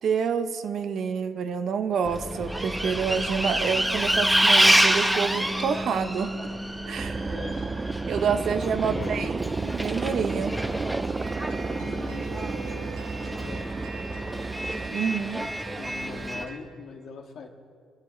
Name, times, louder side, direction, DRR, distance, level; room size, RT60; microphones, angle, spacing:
voice 1, 0.0-6.4 6.9-7.4 8.1-10.5 14.9-15.5, right 6 dB, 60° right, 10 dB, 0.9 m, -28 dB
Bus, 2.0-16.5, right 1 dB, 10° right, 1.3 m, -28 dB
sound 1, 7.0-14.9, right 4 dB, 30° right, 0.5 m, -32 dB
voice 2, 7.2-7.7 8.8-9.3 11.7-14.4 15.8-17.5, left 5 dB, 65° left, 2 dB, 1.9 m, -42 dB
sound 2, 11.2-16.6, right 3 dB, 90° right, 2.5 m, -42 dB
25.5 x 10.5 x 3.3 m, 2.1 s
supercardioid pair, 60°, 0 cm